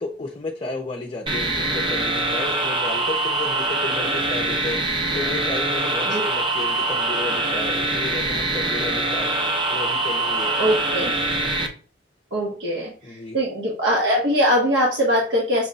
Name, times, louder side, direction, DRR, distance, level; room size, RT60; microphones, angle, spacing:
voice 1, 0.0-9.3 9.7-10.6 13.0-13.4, left 2 dB, 30° left, 0.5 m, -33 dB
sound 1, 1.3-11.7, right 2 dB, 25° right, 0.7 m, -24 dB
voice 2, 10.6-11.1 12.3-15.7, equal, 70° right, 1.0 m, -22 dB
5.9 x 2.1 x 3.8 m
head